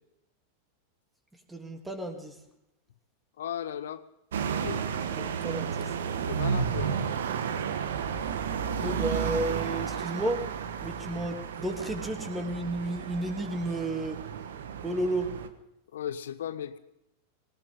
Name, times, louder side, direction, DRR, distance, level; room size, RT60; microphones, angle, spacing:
voice 1, 1.5-2.3 5.1-5.9 8.8-10.4 10.8-14.2 14.8-15.3, right 1 dB, 10° right, 5 dB, 2.9 m, -32 dB
voice 2, 3.4-4.0 4.6-5.2 6.3-7.1 15.9-16.8, left 9 dB, 75° left, 13 dB, 1.0 m, -36 dB
sound 1, 4.3-15.5, right 7 dB, 75° right, 1.2 m, -32 dB
18.5 x 18.5 x 3.8 m, 0.85 s
hypercardioid pair, 100°, 0 cm